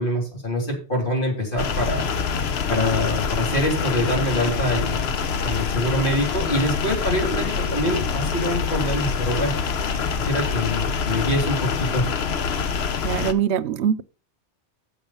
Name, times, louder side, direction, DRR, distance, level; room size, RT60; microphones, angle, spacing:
voice 1, 0.0-5.1 5.4-9.5 10.2-12.1, left 1 dB, 50° left, 3.6 m, -25 dB
sound 1, 1.6-13.3, left 6 dB, 70° left, 1.1 m, -25 dB
voice 2, 13.0-14.0, right 8 dB, 80° right, 0.9 m, -22 dB
8.8 x 7.2 x 5.5 m
omnidirectional pair, 1.1 m